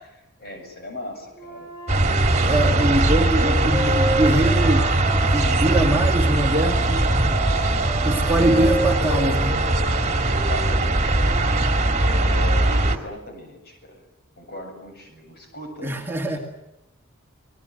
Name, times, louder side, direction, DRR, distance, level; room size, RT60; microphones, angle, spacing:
voice 1, 0.0-1.7 2.4-2.9 8.5-8.7 10.3-14.0 14.4-15.9 16.3-16.4, left 1 dB, 45° left, 5 dB, 7.8 m, -38 dB
Wind instrument woodwind instrument, 1.4-6.0 6.6-11.4, equal, 15° left, 7.3 m, -32 dB
sound 1, 1.9-13.0, right 2 dB, 30° right, 2.3 m, -20 dB
voice 2, 2.4-4.9 5.3-7.1 8.0-9.6 15.8-16.4, right 1 dB, 10° right, 1 dB, 2.3 m, -23 dB
29.5 x 20.0 x 8.0 m, 0.89 s
head